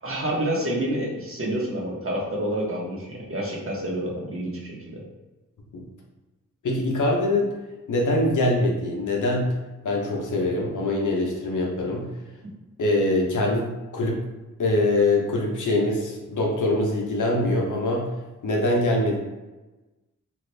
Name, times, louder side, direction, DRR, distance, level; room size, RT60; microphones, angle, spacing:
voice 1, 0.0-5.0 12.4-12.5, right 1 dB, 45° right, -3 dB, 1.0 m, -28 dB
voice 2, 6.6-7.5 7.9-9.5 9.8-12.1 12.8-14.2 14.6-18.1 18.4-19.2, left 1 dB, 75° left, -1 dB, 0.8 m, -23 dB
2.8 x 2.5 x 3.3 m, 1.1 s
cardioid pair, 45°, 31 cm